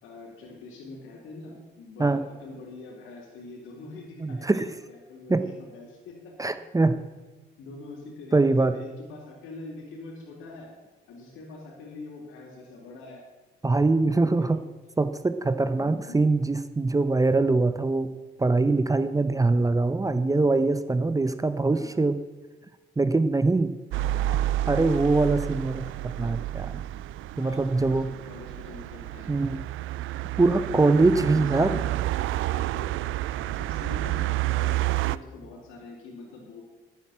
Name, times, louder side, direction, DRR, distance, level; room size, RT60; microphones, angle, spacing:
voice 1, 0.0-6.6 7.6-10.7 11.1-13.2 13.8-14.6 15.8-16.2 21.7-21.9 27.4-29.3 31.2-33.0 33.4-36.6, left 3 dB, 90° left, -2 dB, 3.9 m, -44 dB
voice 2, 4.2-4.6 5.3-5.5 6.4-6.9 8.3-8.7 13.6-14.6 15.0-18.1 18.4-22.2 23.0-23.8 24.2-24.4 24.7-26.7 27.4-28.1 29.3-29.6 30.4-31.8, right 3 dB, 15° right, 12 dB, 0.7 m, -23 dB
sound 1, 23.9-35.2, right 15 dB, 85° right, 0.4 m, -30 dB
12.0 x 9.0 x 7.3 m, 1.2 s
cardioid pair, 90°, 20 cm